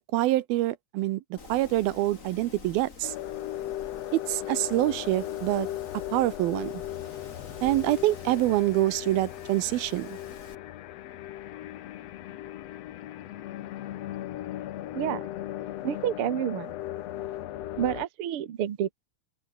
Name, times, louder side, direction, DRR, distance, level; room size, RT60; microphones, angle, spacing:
voice 1, 0.0-3.1 4.1-5.7 6.1-6.7 7.6-10.2, right 16 dB, 80° right, 2.7 m, -26 dB
Wind, 1.4-10.5, left 4 dB, 25° left, 2.2 m, -48 dB
Weary Traveller, 3.0-18.1, left 13 dB, 80° left, 1.4 m, -37 dB
voice 2, 15.8-16.7 17.8-18.9, right 10 dB, 50° right, 1.7 m, -29 dB
open air
omnidirectional pair, 4.3 m